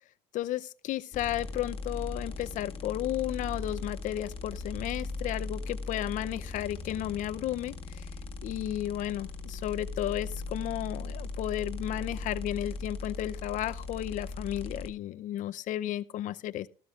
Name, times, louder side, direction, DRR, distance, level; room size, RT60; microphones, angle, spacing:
voice 1, 0.3-8.1 8.4-16.7, left 13 dB, 55° left, 0.6 m, -33 dB
sound 1, 1.1-14.9, left 3 dB, 35° left, 1.8 m, -38 dB
14.0 x 13.0 x 2.4 m
supercardioid pair, 95°, 16 cm